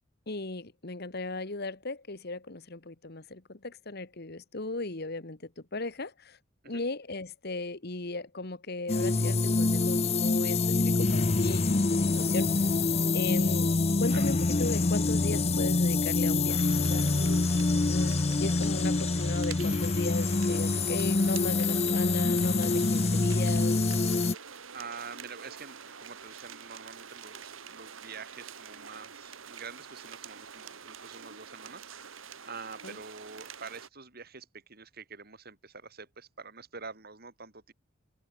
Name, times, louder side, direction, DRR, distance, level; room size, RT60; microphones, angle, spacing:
voice 1, 0.3-5.4 5.7-6.4 6.7-12.5 13.1-13.7 14.0-17.1 17.9-18.1 18.4-23.8 32.8-32.9, left 2 dB, 55° left, 1.7 m, -36 dB
sound 1, 8.9-24.3, left 3 dB, 30° left, 0.7 m, -26 dB
sound 2, 16.5-33.9, right 7 dB, 80° right, 2.0 m, -46 dB
voice 2, 24.7-37.7, right 5 dB, 50° right, 4.0 m, -46 dB
head